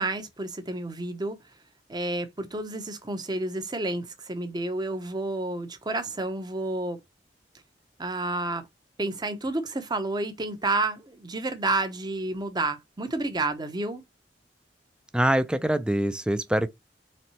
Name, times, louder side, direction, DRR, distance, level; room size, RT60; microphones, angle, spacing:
voice 1, 0.0-1.4 1.9-7.0 8.0-8.7 9.0-14.0, right 2 dB, 25° right, 0.8 m, -30 dB
voice 2, 15.1-16.7, right 1 dB, 5° right, 0.4 m, -24 dB
4.3 x 3.2 x 3.0 m
head